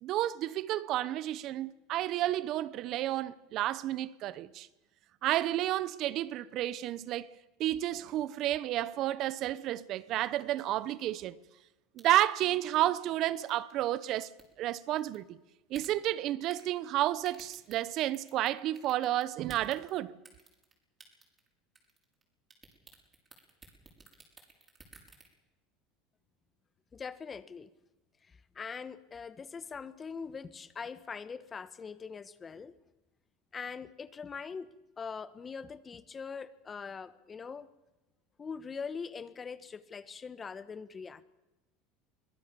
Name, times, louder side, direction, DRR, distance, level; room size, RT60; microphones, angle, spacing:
voice 1, 0.0-4.7 5.2-7.3 7.6-11.4 12.0-15.4 15.7-20.2, right 14 dB, 55° right, 0.9 m, -31 dB
sound 1, 12.0-12.3 12.7-12.8 13.5-13.7 14.2-14.4 15.0-15.2 15.7-15.9 16.5-16.7 17.2-18.5 18.8-20.0 20.2-20.7 21.0-21.5 21.7-22.2 22.5-25.3, right 4 dB, 25° right, 5.9 m, -53 dB
voice 2, 26.9-27.7 28.3-32.8 33.5-37.7 38.4-41.2, left 5 dB, 25° left, 1.2 m, -42 dB
23.5 x 18.0 x 7.0 m
supercardioid pair, 100°, 0 cm